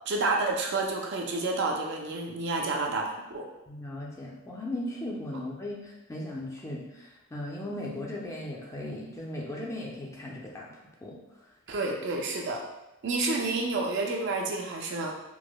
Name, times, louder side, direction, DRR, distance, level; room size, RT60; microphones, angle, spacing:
voice 1, 0.1-3.4 11.7-12.6 13.0-15.1, right 3 dB, 55° right, 1 dB, 0.4 m, -29 dB
voice 2, 3.7-11.5, left 1 dB, 15° left, -3 dB, 0.4 m, -37 dB
4.7 x 2.0 x 2.2 m, 0.97 s
head